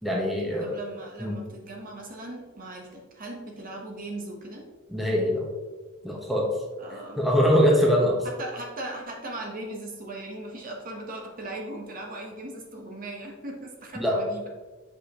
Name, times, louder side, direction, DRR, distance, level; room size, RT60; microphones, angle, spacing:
voice 1, 0.0-0.8 1.2-1.4 4.9-5.4 6.0-6.5 7.2-8.3 13.9-14.2, equal, ahead, -3 dB, 1.0 m, -23 dB
voice 2, 0.6-4.7 6.8-7.2 8.2-14.5, right 2 dB, 45° right, 0 dB, 1.1 m, -38 dB
7.7 x 5.0 x 3.0 m, 1.3 s
head